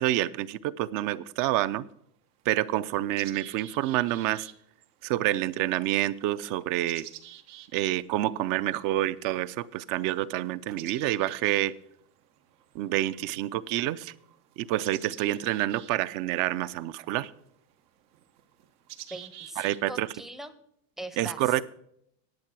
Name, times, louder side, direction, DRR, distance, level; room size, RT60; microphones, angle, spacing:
voice 1, 0.0-1.9 2.5-4.5 5.0-7.1 7.7-11.7 12.7-14.1 14.6-17.3 19.6-20.1 21.2-21.6, right 14 dB, 45° right, 17 dB, 0.6 m, -28 dB
sound 1, 1.0-1.1 1.9-2.0 2.4-20.1, right 12 dB, 80° right, 1.4 m, -50 dB
voice 2, 19.1-20.5 21.0-21.6, right 1 dB, ahead, 11 dB, 0.6 m, -41 dB
10.5 x 8.5 x 6.2 m, 0.73 s
supercardioid pair, 130°, 44 cm